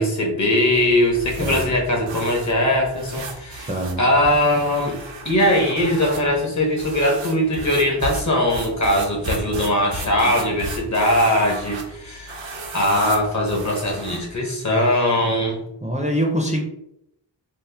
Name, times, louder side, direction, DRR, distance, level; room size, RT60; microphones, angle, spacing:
voice 1, 0.0-3.7 4.0-5.0 5.2-12.4 12.7-15.6, left 1 dB, 40° left, 0 dB, 0.8 m, -20 dB
sound 1, 0.6-14.4, right 2 dB, 80° right, 0.6 m, -35 dB
voice 2, 3.7-4.0 10.2-10.4 15.8-16.6, equal, 15° right, -1 dB, 0.5 m, -24 dB
2.8 x 2.0 x 3.3 m, 0.78 s
wide cardioid pair, 85°, 44 cm